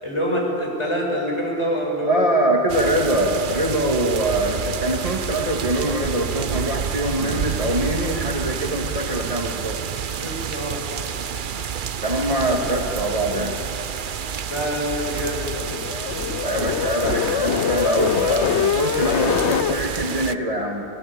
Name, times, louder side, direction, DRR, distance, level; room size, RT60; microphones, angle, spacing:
voice 1, 0.0-2.2 10.1-10.8 14.5-15.5, equal, 25° left, -2 dB, 6.5 m, -26 dB
voice 2, 2.0-9.8 12.0-13.6 16.4-20.9, right 1 dB, 35° right, 0 dB, 2.1 m, -23 dB
sound 1, 2.7-20.4, right 7 dB, 55° right, 0.8 m, -29 dB
sound 2, 15.1-19.8, left 8 dB, 85° left, 1.1 m, -24 dB
29.0 x 20.0 x 8.8 m, 2.9 s
omnidirectional pair, 1.1 m